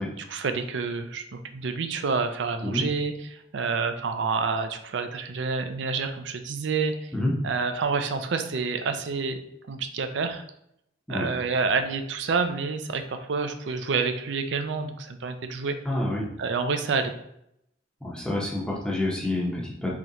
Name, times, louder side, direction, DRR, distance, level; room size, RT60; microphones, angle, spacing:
voice 1, 0.0-7.1 7.4-9.4 9.7-10.4 11.1-15.8 16.4-17.1, right 4 dB, 70° right, 8 dB, 0.4 m, -28 dB
voice 2, 15.8-16.3 18.0-19.9, left 1 dB, 5° left, -4 dB, 0.8 m, -28 dB
3.9 x 3.1 x 2.8 m, 0.75 s
head